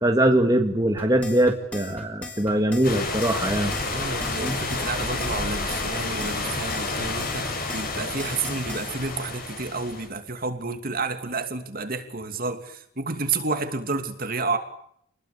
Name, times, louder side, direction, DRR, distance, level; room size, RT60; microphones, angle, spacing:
voice 1, 0.0-3.7 4.4-4.6, right 1 dB, 20° right, 2.1 m, -22 dB
sound 1, 1.0-8.9, left 2 dB, 5° left, 5.8 m, -39 dB
sound 2, 2.8-10.1, left 3 dB, 45° left, 6.8 m, -30 dB
voice 2, 3.8-14.6, right 3 dB, 45° right, 2.8 m, -30 dB
29.0 x 21.5 x 8.6 m
head